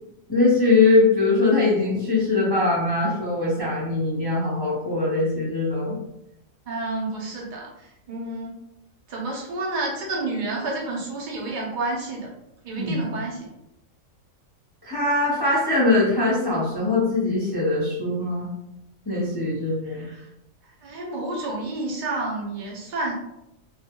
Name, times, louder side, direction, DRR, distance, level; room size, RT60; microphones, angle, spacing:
voice 1, 0.3-6.0 12.8-13.1 14.8-18.5 19.1-20.1, left 3 dB, 25° left, -8 dB, 0.6 m, -21 dB
voice 2, 6.7-7.7 8.1-8.5 9.1-12.3 12.6-13.4 19.9-20.2 20.8-23.1, right 2 dB, 45° right, -2 dB, 0.7 m, -29 dB
2.4 x 2.2 x 2.8 m, 0.87 s
omnidirectional pair, 1.3 m